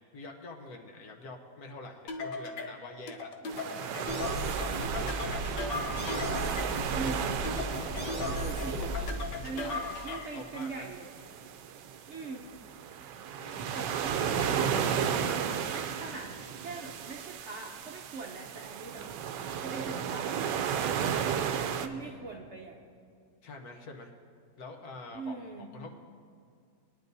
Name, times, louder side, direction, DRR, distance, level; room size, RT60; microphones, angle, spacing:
voice 1, 0.1-3.3 3.9-5.6 6.0-6.8 8.2-9.0 9.3-10.9 13.4-13.8 21.5-22.5 23.4-24.1 24.6-26.0, left 3 dB, 65° left, 2 dB, 1.4 m, -47 dB
sound 1, 2.1-10.4, left 3 dB, 80° left, 1.4 m, -38 dB
sound 2, 3.5-21.9, right 8 dB, 80° right, 1.2 m, -34 dB
sound 3, 4.1-9.3, right 1 dB, 10° right, 0.8 m, -36 dB
voice 2, 6.9-7.3 8.2-8.8 9.4-11.1 12.1-12.5 13.7-16.3 16.6-19.1 19.6-21.1 21.8-22.8 25.1-25.7, right 4 dB, 55° right, 1 dB, 0.8 m, -41 dB
21.0 x 10.5 x 2.7 m, 2.2 s
omnidirectional pair, 1.8 m